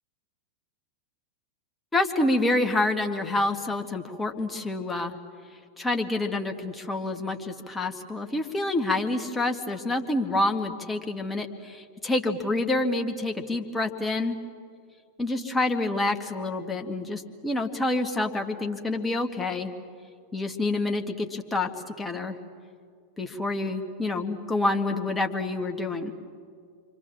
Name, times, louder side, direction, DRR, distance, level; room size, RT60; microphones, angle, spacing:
voice 1, 1.9-5.1 5.8-14.4 15.2-19.7 20.3-21.7 22.0-22.4 23.2-26.1, left 2 dB, 10° left, 4 dB, 2.1 m, -27 dB
29.0 x 24.5 x 7.2 m, 2.1 s
figure-of-eight pair, 90°, 0 cm